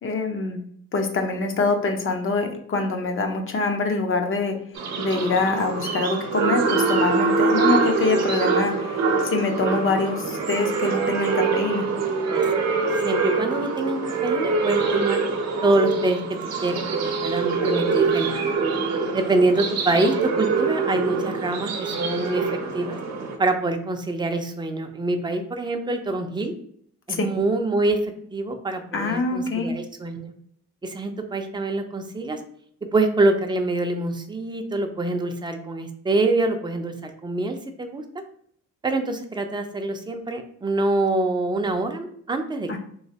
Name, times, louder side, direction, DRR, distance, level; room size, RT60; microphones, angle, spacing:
voice 1, 0.0-0.6 0.9-4.6 5.0-11.9 27.1-27.3 28.9-29.7 42.7-42.8, left 3 dB, 45° left, 5 dB, 0.7 m, -25 dB
sound 1, 4.8-23.4, right 4 dB, 60° right, 0.7 m, -24 dB
voice 2, 12.3-12.6 13.0-15.2 15.6-16.2 16.6-16.8 17.2-18.6 19.1-22.5 22.7-23.0 23.4-26.5 27.1-28.0 28.3-30.3 30.8-32.4 32.9-38.0 38.8-42.7, right 2 dB, 15° right, 5 dB, 0.5 m, -25 dB
3.1 x 2.8 x 2.8 m, 0.63 s
cardioid pair, 90°, 30 cm